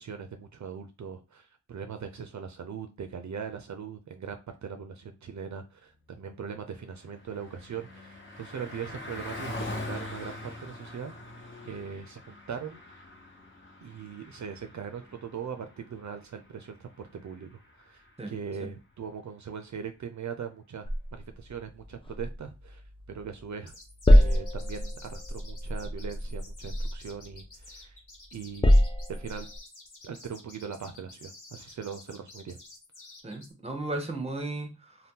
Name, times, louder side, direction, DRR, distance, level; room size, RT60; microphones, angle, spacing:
voice 1, 0.0-12.8 13.8-20.9 21.1-22.8 23.1-23.8 24.1-28.0 28.3-29.5 30.0-32.6, right 6 dB, 65° right, 0.4 m, -40 dB
Car passing by, 6.6-18.3, left 2 dB, 40° left, 1.0 m, -43 dB
voice 2, 18.2-18.7 33.2-35.1, right 2 dB, 20° right, 0.7 m, -36 dB
sound 1, 20.8-23.4 23.7-27.9 28.3-29.6, equal, 20° left, 0.4 m, -25 dB
sound 2, 23.7-33.5, left 2 dB, 75° left, 1.1 m, -51 dB
2.7 x 2.1 x 3.5 m
wide cardioid pair, 70°, 31 cm